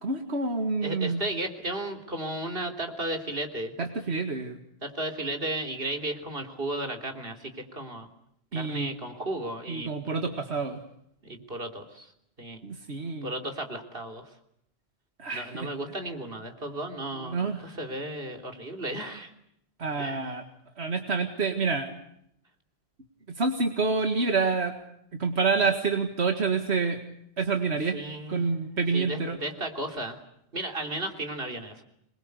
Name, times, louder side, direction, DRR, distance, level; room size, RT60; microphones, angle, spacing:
voice 1, 0.0-1.2 3.8-4.6 8.5-8.9 9.7-10.8 12.6-13.3 15.2-15.7 17.2-17.7 19.8-20.4 20.8-21.9 23.3-24.8 25.1-27.0 27.4-28.0 28.3-29.4, right 4 dB, 85° right, 5 dB, 2.2 m, -28 dB
voice 2, 0.8-3.7 4.8-8.1 8.5-9.9 11.2-12.1 12.4-12.6 13.2-14.3 15.3-19.3 20.0-20.2 27.9-28.5 28.9-30.2 30.5-31.8, right 1 dB, 60° right, 5 dB, 3.7 m, -34 dB
26.5 x 22.0 x 8.2 m, 0.75 s
omnidirectional pair, 1.1 m